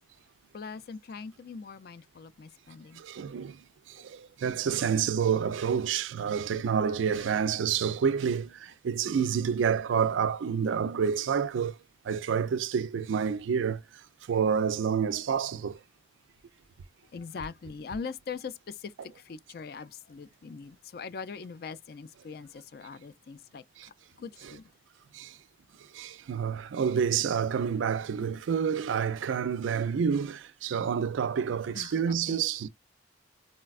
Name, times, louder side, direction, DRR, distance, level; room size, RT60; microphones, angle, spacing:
voice 1, 0.5-3.0 4.0-4.1 6.6-7.7 17.1-24.6 31.7-32.4, left 5 dB, 55° left, 0.4 m, -42 dB
voice 2, 2.9-11.8 12.0-15.8 23.8-23.9 24.4-24.5 25.1-25.4 25.8-32.7, right 7 dB, 90° right, 0.4 m, -29 dB
4.1 x 2.2 x 2.3 m
head